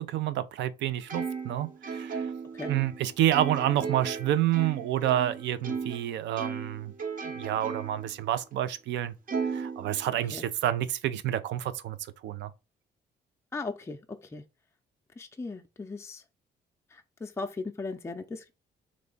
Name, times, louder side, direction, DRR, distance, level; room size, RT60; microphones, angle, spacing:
voice 1, 0.0-2.3 2.7-6.9 7.4-9.1 9.5-12.0 12.2-12.5, right 12 dB, 85° right, 0.5 m, -28 dB
Plucked string instrument, 1.1-6.0 6.4-8.1 8.5-8.6 9.3-10.4, right 5 dB, 45° right, 0.8 m, -36 dB
voice 2, 13.5-14.0 14.3-14.4 15.2-16.2 16.9-18.5, left 3 dB, 15° left, 0.5 m, -37 dB
3.4 x 3.1 x 3.8 m
cardioid pair, 105°, 18 cm